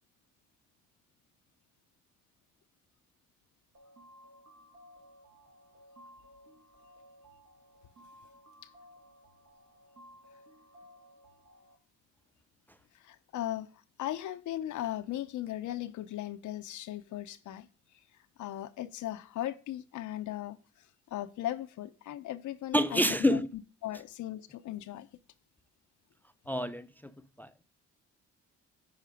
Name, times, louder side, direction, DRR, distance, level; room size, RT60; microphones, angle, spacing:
sound 1, 3.7-11.7, equal, 65° right, 2.2 m, -57 dB
voice 1, 12.9-13.7 14.0-17.7 18.4-20.6 21.1-23.4 23.8-25.1, left 13 dB, 75° left, 0.8 m, -37 dB
voice 2, 22.7-23.5 26.5-27.1 27.4-27.6, left 1 dB, 5° left, 0.5 m, -28 dB
8.8 x 5.0 x 5.0 m
cardioid pair, 90°, 30 cm